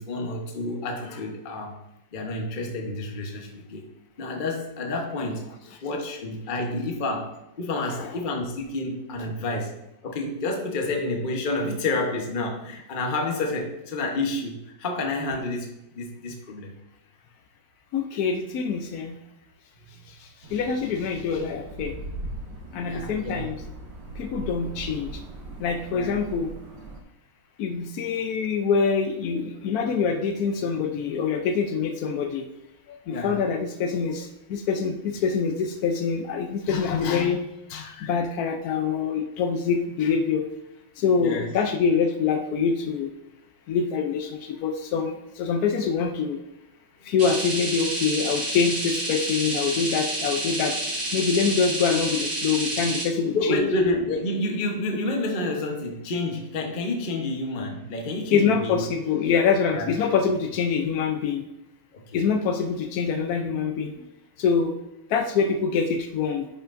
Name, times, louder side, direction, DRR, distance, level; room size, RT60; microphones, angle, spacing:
voice 1, 0.0-1.8 2.1-3.8 4.2-5.5 5.8-15.7 15.9-16.7 22.8-23.5 25.9-26.2 33.1-33.4 41.2-41.5 53.3-58.8 59.7-59.9 61.9-62.2, left 2 dB, 35° left, 1 dB, 0.8 m, -29 dB
voice 2, 7.9-8.3 17.9-19.2 20.1-21.9 22.7-23.6 24.2-25.2 25.6-26.5 27.6-32.5 32.9-40.4 41.0-43.1 43.7-46.4 47.0-53.7 58.3-61.4 62.1-64.1 64.4-64.8 65.1-66.5, left 6 dB, 80° left, 5 dB, 0.8 m, -25 dB
sound 1, 20.4-27.0, right 2 dB, 60° right, 1.5 m, -39 dB
sound 2, 47.2-53.0, right 1 dB, 35° right, 2.5 m, -29 dB
10.5 x 5.7 x 2.6 m, 0.90 s
omnidirectional pair, 2.3 m